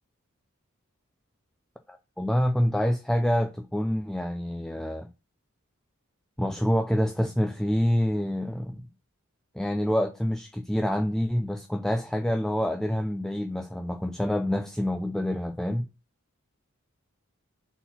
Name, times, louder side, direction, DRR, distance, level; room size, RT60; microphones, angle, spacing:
voice 1, 1.9-5.1 6.4-8.8 9.5-15.9, equal, ahead, 0.4 m, -27 dB
4.2 x 4.1 x 5.6 m
head